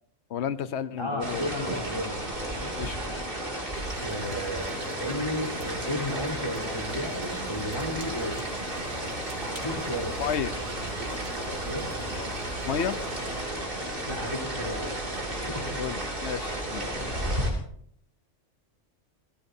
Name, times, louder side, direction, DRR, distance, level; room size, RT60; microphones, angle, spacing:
voice 1, 0.3-1.4 2.8-3.0 10.2-10.5 12.6-13.0 15.8-17.0, left 8 dB, 70° left, 14 dB, 1.0 m, -31 dB
voice 2, 1.0-2.7 4.0-8.4 9.4-10.1 11.7-11.9 14.1-15.7, equal, 25° left, -3 dB, 3.8 m, -34 dB
sound 1, 1.2-17.5, right 1 dB, 50° right, 2.8 m, -33 dB
sound 2, 3.7-13.5, right 2 dB, 80° right, 3.5 m, -44 dB
29.5 x 14.5 x 2.7 m, 0.66 s
omnidirectional pair, 1.2 m